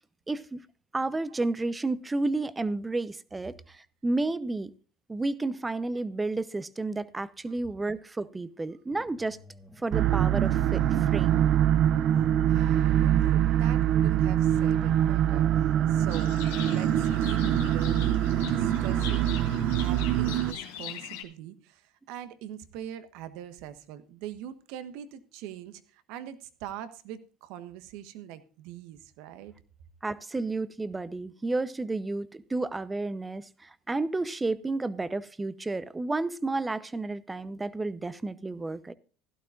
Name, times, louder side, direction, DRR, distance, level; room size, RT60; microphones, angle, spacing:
voice 1, 0.3-0.6 0.9-4.7 5.1-9.4 9.8-10.8 11.1-11.4 30.0-38.9, right 2 dB, 15° right, 0.8 m, -31 dB
sound 1, 8.9-19.4, equal, 5° left, 1.9 m, -50 dB
sound 2, 9.9-20.5, right 11 dB, 55° right, 0.8 m, -24 dB
voice 2, 12.4-29.5, right 11 dB, 70° right, 1.2 m, -42 dB
Livestock farm animals working animals, 16.1-21.2, left 10 dB, 85° left, 2.0 m, -41 dB
16.0 x 12.0 x 2.5 m
supercardioid pair, 90°, 0 cm